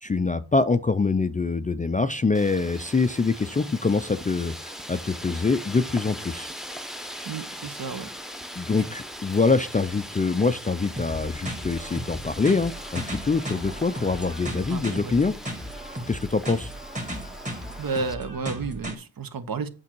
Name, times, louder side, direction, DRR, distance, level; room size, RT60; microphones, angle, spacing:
voice 1, 0.0-6.5 8.6-15.3 16.1-16.7, left 4 dB, 20° left, 0.4 m, -24 dB
Wind, 2.3-18.1, equal, ahead, 0.8 m, -40 dB
voice 2, 7.2-8.1 8.8-8.9 14.7-15.1 17.8-19.7, right 4 dB, 55° right, 1.0 m, -32 dB
sound 1, 11.0-19.0, equal, 15° right, 1.8 m, -36 dB
8.4 x 6.2 x 4.5 m
wide cardioid pair, 100°, 42 cm